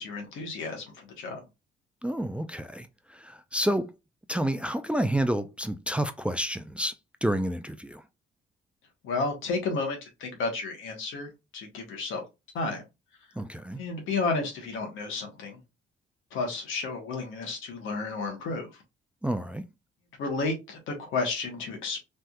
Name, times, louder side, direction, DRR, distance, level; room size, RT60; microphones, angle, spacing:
voice 1, 0.0-1.4 9.0-12.2 12.5-12.8 13.7-15.6 16.3-18.7 20.2-22.0, left 3 dB, 85° left, 1.2 m, -32 dB
voice 2, 2.0-3.9 4.3-6.9 7.2-8.0 13.4-13.8 19.2-19.6, right 1 dB, 5° right, 0.3 m, -29 dB
3.3 x 2.7 x 2.3 m
cardioid pair, 90°, 20 cm